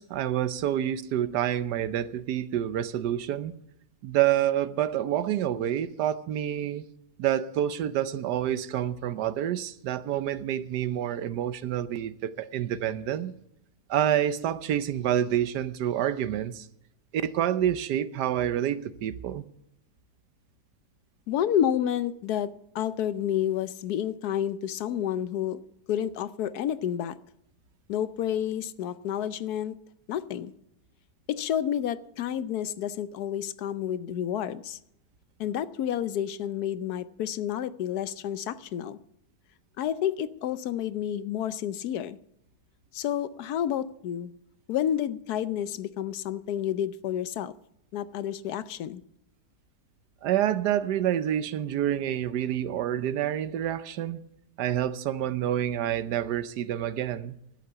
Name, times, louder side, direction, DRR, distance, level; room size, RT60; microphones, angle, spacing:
voice 1, 0.0-3.5 4.0-6.9 7.2-13.3 13.9-16.7 17.2-19.4 50.2-54.2 54.6-57.4, right 11 dB, 80° right, 1.3 m, -28 dB
voice 2, 21.3-25.6 25.9-27.2 27.9-29.8 30.1-30.5 31.3-34.8 35.4-39.0 39.8-42.2 42.9-44.3 44.7-47.5 47.9-49.0, left 10 dB, 75° left, 1.1 m, -30 dB
12.0 x 8.4 x 7.9 m
omnidirectional pair, 1.8 m